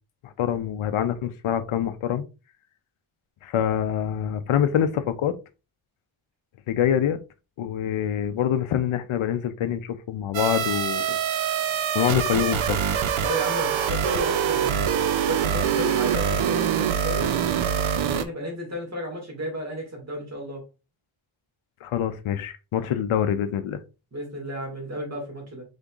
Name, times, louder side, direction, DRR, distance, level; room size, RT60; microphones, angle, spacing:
voice 1, 0.2-2.2 3.4-5.4 6.7-7.2 7.6-11.5 11.9-12.8 21.8-23.8, left 9 dB, 75° left, 0.6 m, -25 dB
sound 1, 10.3-18.2, right 8 dB, 70° right, 0.6 m, -24 dB
voice 2, 13.2-15.0 15.3-17.3 18.1-20.6 24.1-25.6, equal, 30° right, 1.9 m, -33 dB
5.3 x 3.6 x 2.4 m
wide cardioid pair, 170°, 50 cm